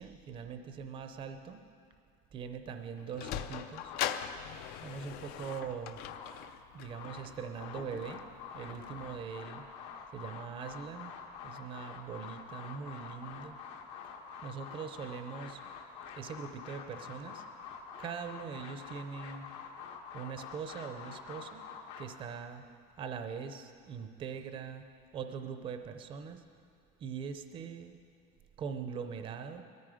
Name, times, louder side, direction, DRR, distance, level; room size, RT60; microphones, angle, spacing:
voice 1, 0.0-1.6 2.3-3.9 4.8-6.0 6.7-8.2 8.5-9.7 10.1-11.1 11.4-13.6 14.4-15.6 16.2-17.4 18.0-19.5 20.1-21.6 22.0-22.6 23.0-24.9 25.1-26.5 27.0-28.0 28.6-29.6, right 6 dB, 25° right, 7 dB, 0.6 m, -42 dB
Sliding door, 2.7-9.3, left 10 dB, 50° left, 0.6 m, -42 dB
sound 1, 3.7-4.5 5.0-6.4 6.7-22.0, left 6 dB, 75° left, 1.8 m, -47 dB
19.5 x 13.5 x 5.0 m, 2.3 s
cardioid pair, 180°, 20 cm